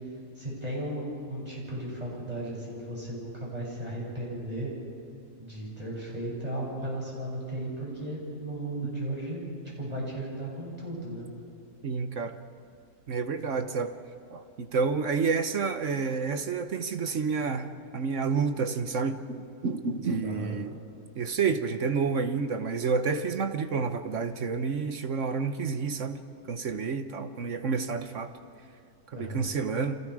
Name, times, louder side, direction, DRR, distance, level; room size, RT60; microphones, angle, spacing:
voice 1, 0.4-4.7 5.4-9.4 9.8-11.3 20.2-20.6 29.1-29.4, right 1 dB, 25° right, -4 dB, 7.8 m, -35 dB
voice 2, 11.8-12.4 13.1-13.9 14.3-20.8 21.2-26.2 26.5-28.3 29.1-30.0, right 5 dB, 60° right, 9 dB, 1.3 m, -29 dB
30.0 x 26.5 x 4.9 m, 2.6 s
omnidirectional pair, 1.6 m